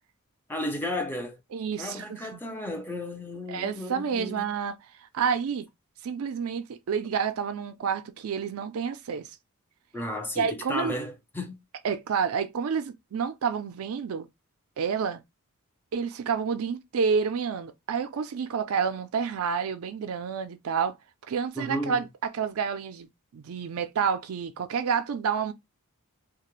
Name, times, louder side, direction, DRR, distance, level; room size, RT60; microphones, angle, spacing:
voice 1, 0.5-1.4 1.8-4.4 9.9-11.6 21.6-22.0, left 1 dB, 10° left, 0.5 m, -33 dB
voice 2, 1.5-2.4 3.5-4.8 5.1-5.7 6.0-9.3 10.4-11.0 11.8-14.3 14.8-15.2 15.9-21.0 21.3-22.1 22.3-23.1 23.3-25.5, right 6 dB, 75° right, 0.4 m, -29 dB
2.3 x 2.1 x 3.0 m
head